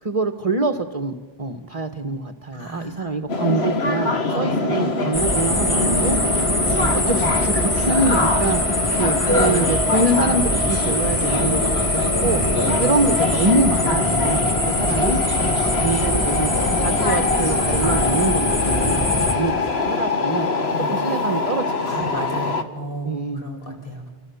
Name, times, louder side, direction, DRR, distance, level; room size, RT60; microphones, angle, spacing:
voice 1, 0.0-6.5 6.8-15.2 15.5-19.5 19.9-20.5 20.9-22.1 23.0-23.4, right 2 dB, 35° right, 8 dB, 1.1 m, -25 dB
voice 2, 2.5-3.2 4.3-4.6 5.0-5.2 7.9-9.9 12.1-13.2 20.6-21.1 21.9-24.1, equal, 60° left, 2 dB, 5.5 m, -31 dB
sound 1, 3.3-22.6, left 3 dB, 80° left, 2.0 m, -24 dB
sound 2, 5.1-19.3, left 1 dB, 30° left, 2.1 m, -23 dB
29.5 x 25.0 x 7.0 m, 1.4 s
omnidirectional pair, 1.1 m